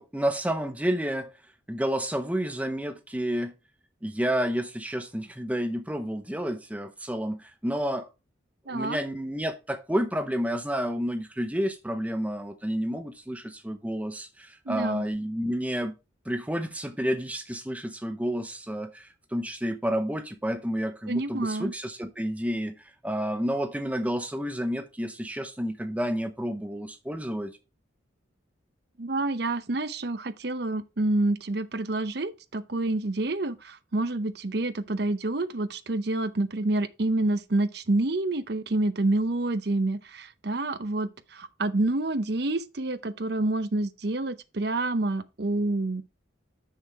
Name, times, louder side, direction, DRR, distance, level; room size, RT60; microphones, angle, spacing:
voice 1, 0.0-1.3 1.7-3.5 4.0-8.1 8.7-15.9 16.3-27.6, equal, 5° right, 0.7 m, -30 dB
voice 2, 8.7-9.0 14.7-15.1 21.1-21.7 29.0-46.0, right 2 dB, 55° right, 0.7 m, -28 dB
6.5 x 6.4 x 4.6 m
head